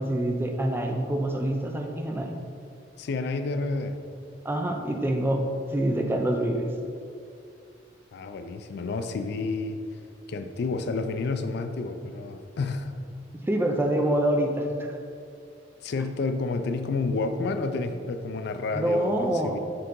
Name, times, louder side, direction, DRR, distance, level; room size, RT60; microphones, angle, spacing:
voice 1, 0.0-2.4 4.4-6.7 13.5-14.7 18.7-19.6, right 1 dB, 10° right, 3 dB, 0.4 m, -26 dB
voice 2, 3.0-4.0 8.1-9.8 10.3-12.9 15.8-19.6, left 3 dB, 60° left, 8 dB, 0.4 m, -30 dB
6.7 x 3.8 x 3.8 m, 2.5 s
head